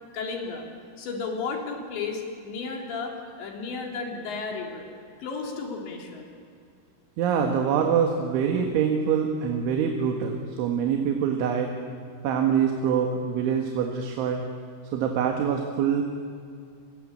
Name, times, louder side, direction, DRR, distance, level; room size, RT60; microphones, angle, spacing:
voice 1, 0.1-0.7 1.0-4.9 5.2-6.3, left 4 dB, 70° left, 1 dB, 5.6 m, -33 dB
voice 2, 7.2-11.7 12.2-14.4 14.9-16.0, right 7 dB, 80° right, 3 dB, 4.2 m, -25 dB
28.5 x 22.5 x 8.8 m, 2.3 s
omnidirectional pair, 5.4 m